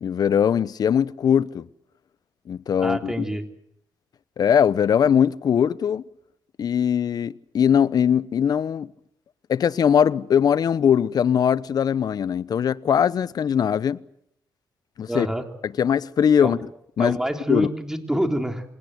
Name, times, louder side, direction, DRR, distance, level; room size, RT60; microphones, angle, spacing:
voice 1, 0.0-1.7 2.5-3.1 4.4-6.0 6.6-8.9 9.5-14.0 15.0-15.3 15.6-16.6 17.0-17.2 17.5-17.7, left 8 dB, 60° left, 0.9 m, -21 dB
voice 2, 2.8-3.5 15.1-15.4 16.4-16.6 17.0-18.6, right 1 dB, 5° right, 3.7 m, -26 dB
27.0 x 19.0 x 7.9 m
cardioid pair, 80°, 8 cm